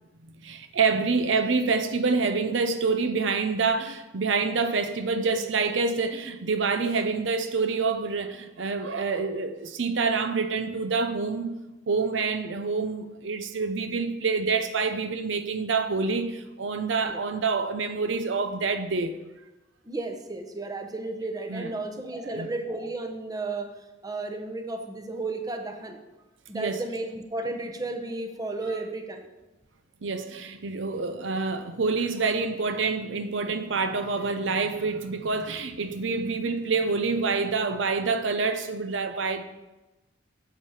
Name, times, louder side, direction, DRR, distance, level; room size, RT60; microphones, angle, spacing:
voice 1, 0.2-11.6 11.9-19.1 21.5-21.7 22.2-22.5 26.5-26.8 30.0-39.4, right 4 dB, 75° right, 0.7 m, -27 dB
voice 2, 19.8-23.7 24.0-26.0 26.5-29.3, right 2 dB, 20° right, 0.9 m, -33 dB
8.3 x 7.2 x 4.9 m
head